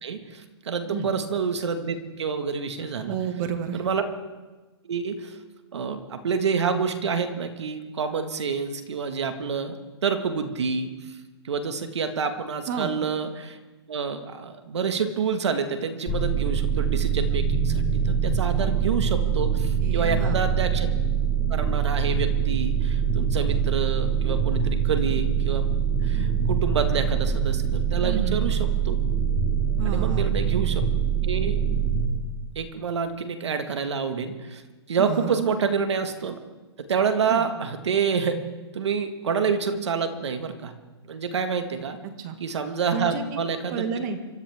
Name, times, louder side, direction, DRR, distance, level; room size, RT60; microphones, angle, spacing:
voice 1, 0.0-3.2 3.7-4.0 4.8-5.4 5.7-10.9 11.5-13.6 13.9-20.9 21.5-25.6 26.0-29.0 29.9-30.8 31.2-31.6 32.6-34.6 34.9-36.4 36.9-38.4 38.7-40.7 41.1-42.0 42.4-43.8, right 6 dB, 80° right, 7 dB, 1.8 m, -28 dB
voice 2, 3.1-3.9 12.7-12.9 19.8-20.5 28.0-28.7 29.8-30.4 35.0-35.4 37.3-37.5 42.2-42.4 42.9-44.2, right 6 dB, 40° right, 7 dB, 2.0 m, -31 dB
sound 1, 16.1-32.1, right 7 dB, 20° left, 5.5 m, -24 dB
26.0 x 13.5 x 3.6 m, 1.2 s
hypercardioid pair, 140°, 14 cm